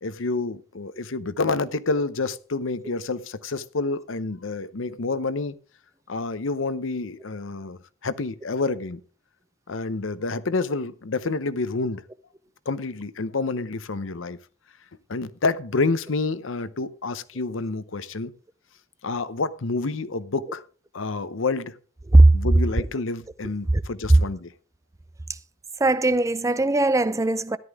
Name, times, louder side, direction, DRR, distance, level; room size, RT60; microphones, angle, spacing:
voice 1, 0.0-5.5 6.1-9.0 9.7-12.0 12.7-14.4 15.1-18.3 19.0-20.6 20.9-21.8 22.3-24.5, left 3 dB, 70° left, 0.8 m, -28 dB
voice 2, 25.8-27.6, right 2 dB, 15° right, 0.4 m, -18 dB
13.5 x 11.0 x 3.6 m
head